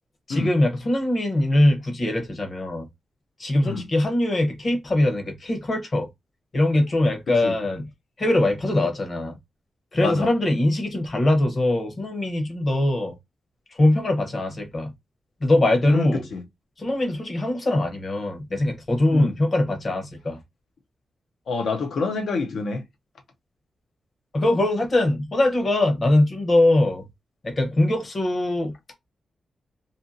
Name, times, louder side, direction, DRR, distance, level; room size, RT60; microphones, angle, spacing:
voice 1, 0.3-2.9 3.4-6.1 6.5-7.9 8.2-9.3 9.9-13.1 13.8-14.9 15.4-16.2 16.8-20.4 24.3-27.0 27.4-28.9, left 1 dB, 30° left, 0.8 m, -22 dB
voice 2, 15.9-16.4 19.1-19.3 21.5-22.8, left 4 dB, 70° left, 0.5 m, -27 dB
2.6 x 2.6 x 2.5 m
wide cardioid pair, 180°, 0 cm